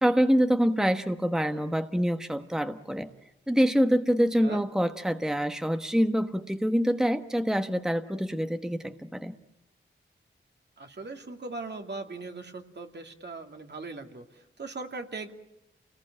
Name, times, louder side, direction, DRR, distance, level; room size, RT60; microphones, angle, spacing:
voice 1, 0.0-3.1 3.5-9.3, equal, 5° right, 7 dB, 1.2 m, -25 dB
voice 2, 10.8-15.3, right 3 dB, 55° right, 4 dB, 2.5 m, -39 dB
29.0 x 19.5 x 8.8 m, 0.93 s
wide cardioid pair, 75°, 20 cm